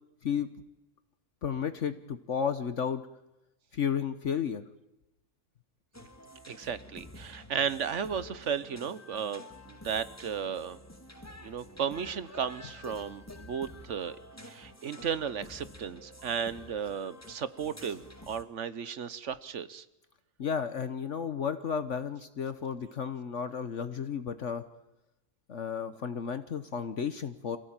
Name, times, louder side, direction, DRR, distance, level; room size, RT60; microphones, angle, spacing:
voice 1, 1.4-3.0 3.7-4.6 20.4-24.6 25.5-27.6, left 7 dB, 60° left, 10 dB, 1.4 m, -33 dB
sound 1, 5.9-18.4, left 1 dB, 10° left, 1.8 m, -49 dB
voice 2, 6.5-10.8 11.4-14.2 14.4-19.8, right 7 dB, 60° right, 15 dB, 1.3 m, -34 dB
27.0 x 16.5 x 8.9 m, 0.94 s
omnidirectional pair, 1.5 m